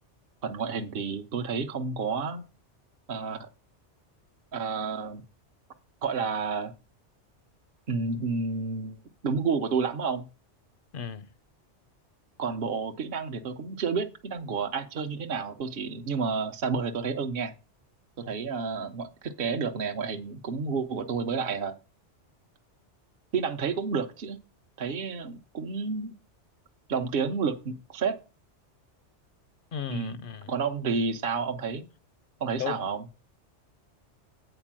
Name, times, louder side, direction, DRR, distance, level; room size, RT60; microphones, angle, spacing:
voice 1, 0.4-2.4 3.1-3.5 4.5-5.2 6.0-6.7 7.9-10.2 12.4-17.5 18.2-21.7 23.3-24.4 24.8-26.1 26.9-28.2 29.9-30.2 30.5-31.9 32.4-33.0, right 5 dB, 55° right, 0.9 m, -30 dB
voice 2, 10.9-11.3 29.7-30.5 32.6-32.9, left 8 dB, 55° left, 0.7 m, -35 dB
8.9 x 4.4 x 7.3 m
omnidirectional pair, 1.2 m